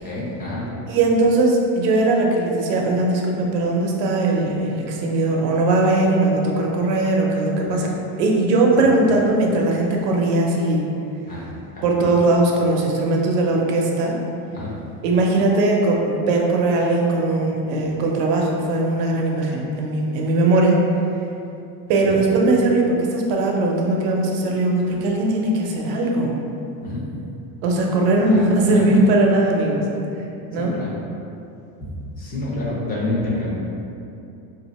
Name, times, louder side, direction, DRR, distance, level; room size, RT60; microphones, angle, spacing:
voice 1, 0.0-0.7 7.7-7.9 11.3-11.4 11.7-11.8 14.5-14.7 22.1-22.2 26.8-27.0 28.2-28.4 28.7-28.9 29.8-29.9 30.6-31.0 31.8-31.9 32.2-33.5, left 2 dB, 20° left, -5 dB, 0.4 m, -28 dB
voice 2, 0.9-7.9 8.2-10.8 11.8-14.2 15.0-20.8 21.9-26.3 27.6-29.8 30.5-30.7, right 2 dB, 90° right, 0 dB, 0.7 m, -19 dB
2.7 x 2.5 x 4.1 m, 2.7 s
cardioid pair, 155°, 48 cm